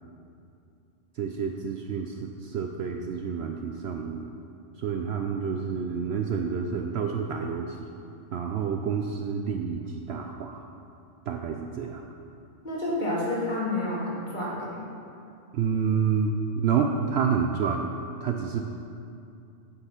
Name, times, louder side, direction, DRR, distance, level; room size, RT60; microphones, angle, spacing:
voice 1, 1.2-4.3 4.8-7.9 8.3-10.6 11.3-12.0 15.5-17.8 18.2-18.7, right 6 dB, 65° right, 3 dB, 0.7 m, -29 dB
voice 2, 12.6-14.8, left 1 dB, 35° left, -7 dB, 2.2 m, -29 dB
9.0 x 5.7 x 5.8 m, 2.5 s
omnidirectional pair, 1.3 m